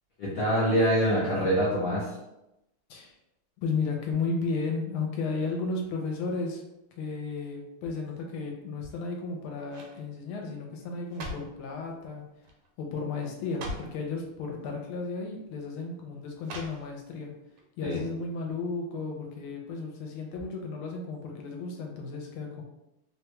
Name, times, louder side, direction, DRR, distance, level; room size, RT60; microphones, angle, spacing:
voice 1, 0.2-2.1 17.8-18.0, equal, 65° left, -7 dB, 0.8 m, -25 dB
voice 2, 3.6-6.6 7.0-12.2 12.8-17.3 17.8-22.6, left 4 dB, 80° left, 1 dB, 1.4 m, -34 dB
sound 1, 8.8-9.3 9.7-10.0 10.8-11.6 12.4-12.7 13.0-13.1 13.4-14.0 14.9-15.1 16.4-17.2 17.6-17.7, equal, 80° right, 1.4 m, -41 dB
3.4 x 2.2 x 2.9 m, 0.90 s
omnidirectional pair, 2.4 m